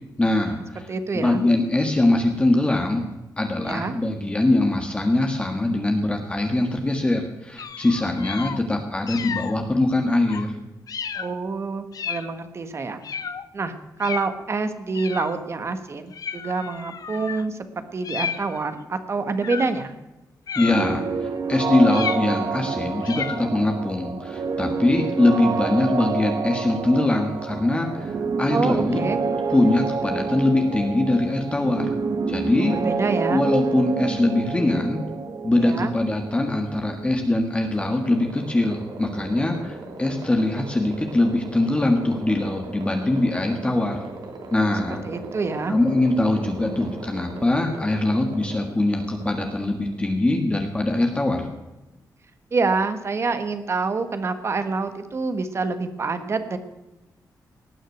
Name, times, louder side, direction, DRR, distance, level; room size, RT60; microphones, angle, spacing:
voice 1, 0.2-0.9 1.1-3.0 3.4-10.5 20.5-29.0 29.5-31.9 32.3-32.8 33.3-35.0 35.4-44.0 44.5-45.0 45.7-51.4, left 2 dB, 15° left, 3 dB, 1.6 m, -22 dB
voice 2, 0.9-1.4 3.6-4.0 11.1-13.0 13.5-13.7 14.0-19.9 28.5-29.2 32.6-33.4 35.6-36.0 44.6-45.8 52.5-56.6, right 4 dB, 40° right, 9 dB, 1.4 m, -27 dB
sound 1, 7.6-8.6 9.1-9.6 10.3-10.5 10.9-11.3 11.9-12.4 13.0-13.5 14.0-14.4 14.9-15.5 16.1-17.4 18.0-18.8 19.4-19.9 20.5-21.1 21.9-22.5 23.0-23.5, left 7 dB, 60° left, 0.8 m, -33 dB
sound 2, 20.6-38.2, right 5 dB, 60° right, 1.1 m, -28 dB
sound 3, 37.7-50.3, right 2 dB, 90° right, 2.8 m, -39 dB
18.5 x 6.5 x 9.1 m, 1.0 s
wide cardioid pair, 140°, 7 cm